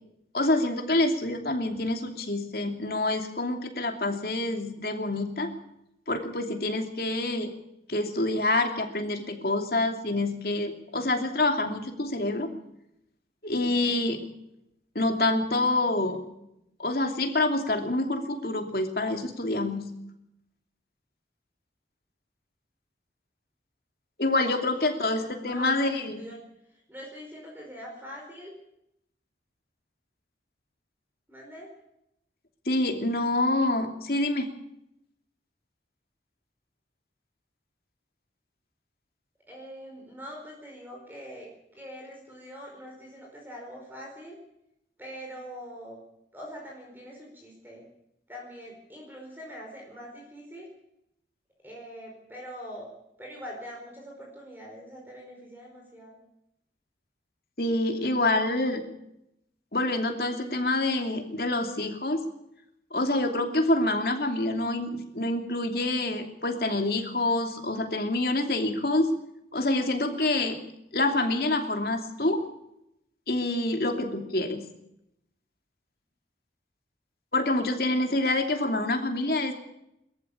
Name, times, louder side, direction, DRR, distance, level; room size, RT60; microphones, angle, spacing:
voice 1, 0.3-5.5 6.1-7.5 7.9-12.5 13.4-14.3 14.9-16.2 16.8-19.9 24.2-26.2 32.7-34.5 57.6-58.8 59.7-62.2 62.9-69.1 69.5-70.6 70.9-72.4 73.3-74.7 77.3-79.5, left 2 dB, 60° left, 4 dB, 2.9 m, -27 dB
voice 2, 24.7-26.4 26.9-28.5 31.3-31.7 39.5-44.3 45.0-46.0 46.3-47.9 48.3-50.7 51.6-52.9 53.2-56.2, equal, 10° right, -1 dB, 4.8 m, -43 dB
22.0 x 14.0 x 8.6 m, 0.81 s
head